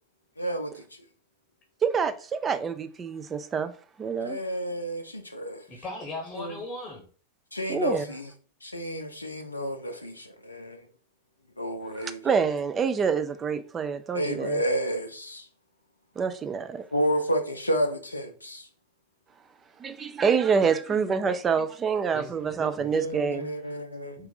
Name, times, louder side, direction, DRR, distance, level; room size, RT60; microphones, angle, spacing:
voice 1, 0.4-0.8 4.2-5.6 6.4-6.6 7.5-8.3 8.6-10.8 11.6-12.2 14.1-15.5 16.9-18.7 22.9-24.2, equal, 80° left, 0.5 m, -30 dB
voice 2, 1.8-3.7 4.0-4.4 7.7-8.0 12.0-14.6 16.2-16.8 19.8-23.5, right 6 dB, 20° right, 0.4 m, -27 dB
voice 3, 5.7-7.0 22.1-22.9 24.2-24.3, left 2 dB, 25° left, 0.9 m, -38 dB
4.0 x 2.5 x 3.9 m
figure-of-eight pair, 90°, 0 cm